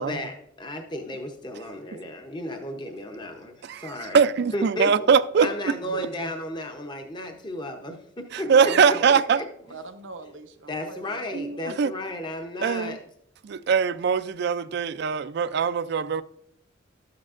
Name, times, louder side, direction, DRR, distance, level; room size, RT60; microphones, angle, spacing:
voice 1, 0.0-4.3 4.5-5.0 5.4-9.4 10.7-13.0, left 1 dB, 25° left, 0.7 m, -34 dB
voice 2, 3.6-6.1 8.3-9.4 11.3-11.9 12.6-13.0 13.4-16.2, right 6 dB, 60° right, 0.4 m, -22 dB
voice 3, 8.4-9.2 9.7-11.2, right 3 dB, 80° right, 0.8 m, -40 dB
12.5 x 8.6 x 2.5 m
head